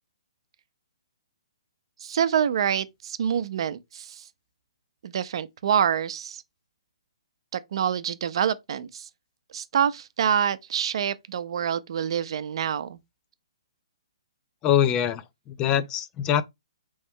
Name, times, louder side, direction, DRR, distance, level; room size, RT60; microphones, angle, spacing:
voice 1, 2.0-4.2 5.0-6.4 7.5-9.1 9.5-13.0, right 8 dB, 60° right, 0.6 m, -26 dB
voice 2, 14.6-16.4, left 10 dB, 25° left, 0.4 m, -24 dB
4.4 x 3.1 x 3.5 m
hypercardioid pair, 140°, 3 cm